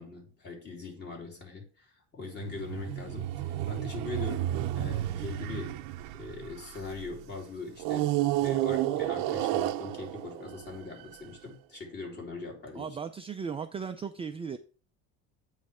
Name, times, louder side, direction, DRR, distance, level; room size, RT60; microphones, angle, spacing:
voice 1, 0.0-5.9 6.1-13.0, left 3 dB, 30° left, 3.0 m, -41 dB
sound 1, 2.4-7.0 7.8-11.2, right 14 dB, 75° right, 0.7 m, -31 dB
voice 2, 12.7-14.6, right 6 dB, 20° right, 0.4 m, -36 dB
9.0 x 3.3 x 4.9 m
supercardioid pair, 110°, 33 cm